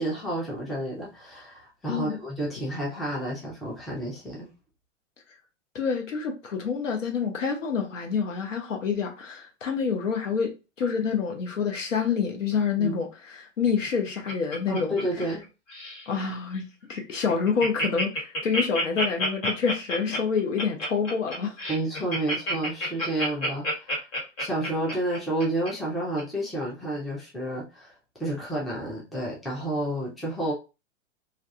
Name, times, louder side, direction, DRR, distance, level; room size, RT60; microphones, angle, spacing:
voice 1, 0.0-4.5 12.8-13.0 14.7-15.4 21.7-23.9 24.4-27.9 28.2-30.5, right 1 dB, ahead, 0.4 m, -30 dB
voice 2, 1.9-2.2 5.7-14.9 16.1-21.5, left 6 dB, 85° left, 0.9 m, -27 dB
Laughter, 13.7-15.4 15.7-16.1 16.5-16.6 16.9-17.0 17.3-25.7 26.2-26.3, equal, 55° left, 1.5 m, -29 dB
2.4 x 2.3 x 2.6 m
hypercardioid pair, 115°, 37 cm